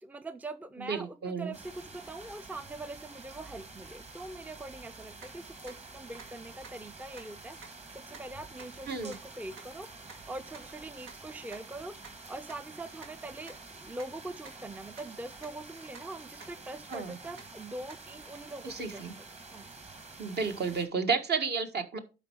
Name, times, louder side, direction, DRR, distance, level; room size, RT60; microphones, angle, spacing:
voice 1, 0.0-7.6 7.9-19.0 19.5-19.7, right 2 dB, 10° right, 0.4 m, -43 dB
voice 2, 0.8-1.5 8.9-9.1 16.9-17.2 18.6-19.1 20.2-22.0, right 5 dB, 55° right, 1.5 m, -32 dB
sound 1, 1.5-20.8, right 3 dB, 35° right, 2.0 m, -49 dB
sound 2, 5.2-5.3 5.7-5.8 6.2-6.3 6.6-6.7 7.2-7.3 7.6-7.7 8.1-8.2 8.6-8.7 9.1-9.2 9.6-9.7 10.1-10.2 10.5-10.6 11.1-11.2 11.5-11.6 12.0-12.1 12.5-12.6 13.0-13.1 13.5-13.6 14.0-14.1 14.4-14.5 15.0-15.1 15.4-15.5 15.9-16.0 16.4-16.5 16.9-17.0 17.4-17.5 17.9-18.0 18.3-18.4, right 5 dB, 90° right, 2.0 m, -48 dB
11.5 x 4.6 x 4.6 m
cardioid pair, 90°, 20 cm